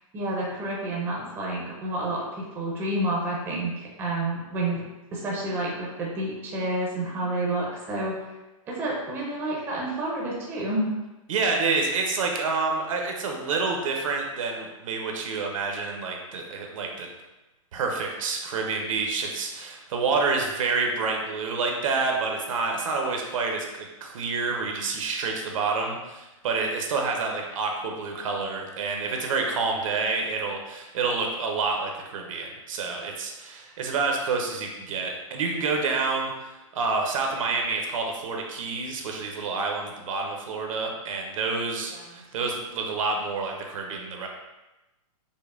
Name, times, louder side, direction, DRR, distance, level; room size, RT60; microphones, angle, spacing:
voice 1, 0.1-4.8 5.1-8.1 8.7-10.9 41.9-42.1, right 1 dB, 10° right, -4 dB, 0.5 m, -29 dB
voice 2, 11.3-17.1 17.7-44.3, right 4 dB, 65° right, 2 dB, 0.7 m, -28 dB
5.2 x 2.1 x 2.4 m, 1.0 s
hypercardioid pair, 160°, 18 cm